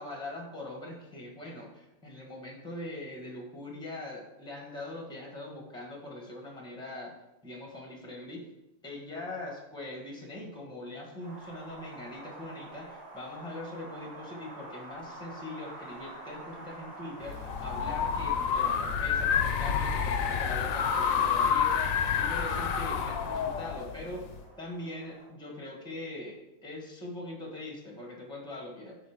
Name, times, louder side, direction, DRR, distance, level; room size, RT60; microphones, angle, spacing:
voice 1, 0.0-7.1 7.4-8.5 8.8-21.9 22.2-24.2 24.6-29.0, left 1 dB, 5° left, -1 dB, 1.0 m, -42 dB
Wind, 11.2-25.3, right 1 dB, 45° right, 2.0 m, -48 dB
sound 1, 17.2-24.4, left 7 dB, 80° left, 1.0 m, -29 dB
7.6 x 2.7 x 4.7 m, 0.96 s
omnidirectional pair, 1.4 m